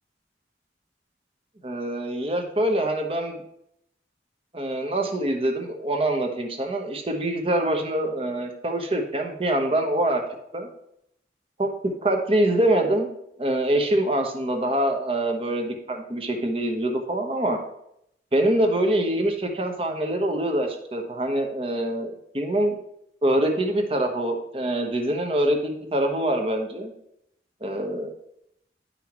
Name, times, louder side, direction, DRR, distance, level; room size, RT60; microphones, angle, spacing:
voice 1, 1.6-3.4 4.5-10.2 10.5-10.7 11.6-13.1 13.4-17.6 18.3-22.8 23.2-26.9 27.6-28.1, right 1 dB, 30° right, 3 dB, 1.0 m, -24 dB
10.5 x 5.6 x 3.0 m, 0.76 s
head